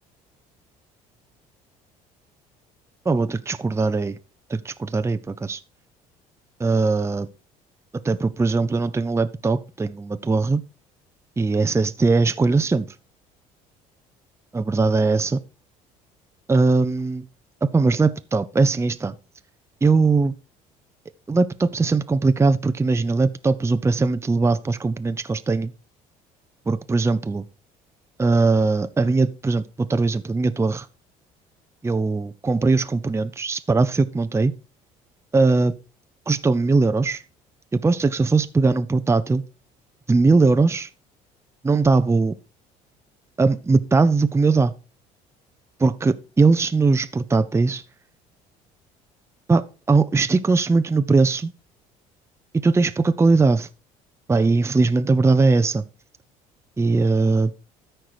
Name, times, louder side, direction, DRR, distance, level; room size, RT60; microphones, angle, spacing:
voice 1, 3.1-4.2 4.5-5.6 6.6-7.3 8.0-10.6 11.4-12.9 14.5-15.4 16.5-17.3 17.7-19.1 19.8-20.3 21.3-25.7 26.7-27.4 28.2-30.9 31.8-34.5 35.3-35.7 36.3-37.2 37.7-39.4 40.1-40.9 41.6-42.3 43.4-44.7 45.8-47.8 49.5-49.6 49.9-51.5 52.6-53.7 54.3-55.8 56.8-57.5, right 3 dB, 15° right, 0.6 m, -20 dB
13.0 x 4.6 x 4.8 m
hypercardioid pair, 65°, 18 cm